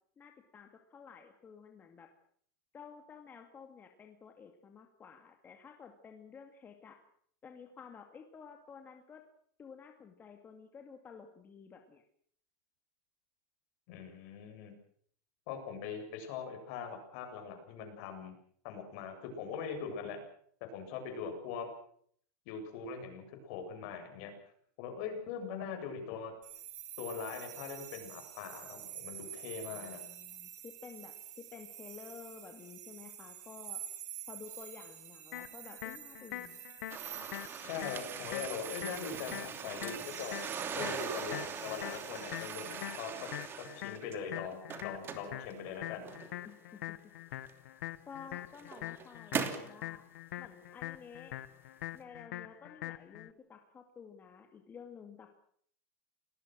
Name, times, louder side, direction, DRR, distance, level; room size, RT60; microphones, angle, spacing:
voice 1, 0.2-2.1 2.7-7.0 7.4-9.2 9.6-12.0 29.6-33.8 34.3-36.6 46.4-47.0 48.1-50.0 50.4-51.4 51.9-55.3, left 6 dB, 20° left, 4 dB, 2.3 m, -52 dB
voice 2, 13.9-14.7 15.5-18.3 18.6-20.2 20.6-21.7 22.5-24.3 24.8-26.3 27.0-30.0 37.6-43.3 43.7-46.1, left 6 dB, 55° left, 5 dB, 7.5 m, -41 dB
sound 1, 26.4-43.0, right 11 dB, 90° right, 6.0 m, -48 dB
sound 2, 35.3-53.3, left 15 dB, 80° left, 1.3 m, -44 dB
sound 3, 36.9-44.1 44.5-46.5 47.5-47.6 48.3-49.7, right 7 dB, 25° right, 3.0 m, -41 dB
28.5 x 19.5 x 6.4 m, 0.62 s
supercardioid pair, 145°, 9 cm